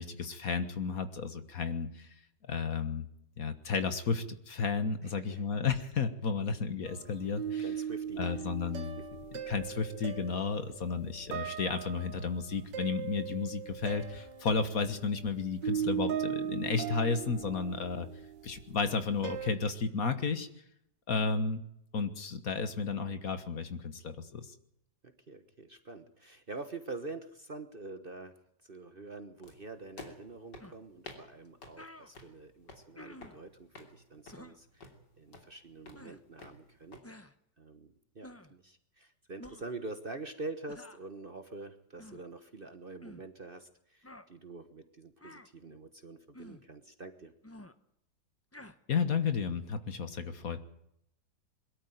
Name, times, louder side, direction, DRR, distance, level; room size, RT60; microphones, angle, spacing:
voice 1, 0.0-2.1 2.4-3.1 3.4-7.6 8.2-9.0 9.5-18.1 18.4-20.5 21.1-21.6 21.9-24.5 48.9-50.6, left 5 dB, 55° left, 10 dB, 1.8 m, -33 dB
voice 2, 5.0-5.4 7.6-8.4 8.7-9.1 25.0-28.4 28.6-34.9 35.2-37.0 37.6-47.3, right 3 dB, 35° right, 9 dB, 1.2 m, -46 dB
sound 1, 6.9-19.6, right 8 dB, 75° right, 2.0 m, -39 dB
sound 2, 29.4-37.0, left 3 dB, 70° left, 3.7 m, -53 dB
sound 3, 30.6-30.8 31.5-31.6 31.8-32.1 33.0-33.4 34.3-34.6 35.9-36.2 37.0-37.3 38.2-38.6 39.4-39.7 40.7-41.0 42.0-42.2 43.0-43.3 44.0-44.3 45.2-45.5 46.3-46.7 47.4-47.7 48.5-48.8, left 1 dB, 10° left, 0.7 m, -50 dB
22.5 x 13.0 x 9.2 m, 0.76 s
omnidirectional pair, 1.9 m